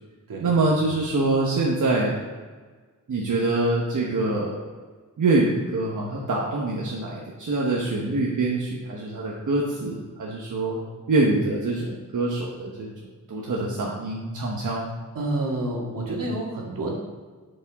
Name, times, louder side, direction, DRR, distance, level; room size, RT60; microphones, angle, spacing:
voice 1, 0.4-2.2 3.1-4.6 5.2-10.8 11.1-12.9 13.3-14.9, right 2 dB, 65° right, -3 dB, 1.2 m, -25 dB
voice 2, 15.2-17.0, right 2 dB, 80° right, -2 dB, 2.0 m, -28 dB
11.0 x 5.5 x 3.6 m, 1.4 s
wide cardioid pair, 160°, 33 cm